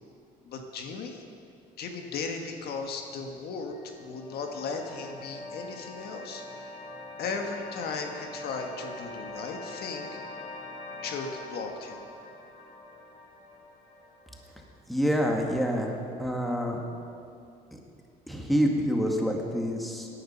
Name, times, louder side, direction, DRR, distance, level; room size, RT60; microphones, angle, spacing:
voice 1, 0.4-1.2 1.8-6.8 7.2-10.2 11.0-12.0, left 4 dB, 70° left, 3 dB, 1.6 m, -36 dB
sound 1, 3.7-14.8, left 2 dB, 40° left, 2.4 m, -43 dB
voice 2, 14.9-16.8 18.3-20.1, equal, ahead, 0 dB, 2.0 m, -27 dB
17.0 x 10.5 x 5.8 m, 2.5 s
cardioid pair, 110°, 17 cm